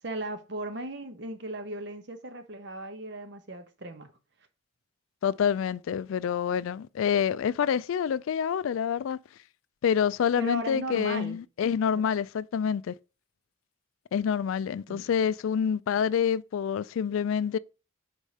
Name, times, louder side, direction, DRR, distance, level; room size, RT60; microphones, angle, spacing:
voice 1, 0.0-4.1 10.4-11.4 12.0-12.1 14.9-15.1, right 1 dB, 55° right, 0.9 m, -37 dB
voice 2, 5.2-9.2 9.8-12.9 14.1-17.6, left 7 dB, 75° left, 0.3 m, -27 dB
4.9 x 4.4 x 5.3 m
head